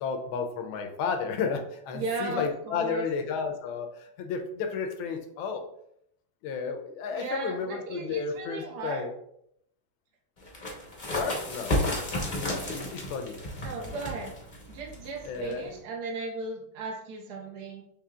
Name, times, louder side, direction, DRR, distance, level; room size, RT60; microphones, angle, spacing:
voice 1, 0.0-5.6 6.4-9.1 11.1-11.8 12.3-13.4 15.3-15.7, left 5 dB, 80° left, 5 dB, 1.4 m, -32 dB
voice 2, 1.9-3.1 7.1-9.1 13.6-14.3 14.7-17.8, right 3 dB, 70° right, 0 dB, 0.9 m, -36 dB
sound 1, 10.4-15.8, left 1 dB, 40° left, 0.6 m, -33 dB
6.5 x 3.0 x 2.3 m, 0.74 s
omnidirectional pair, 2.4 m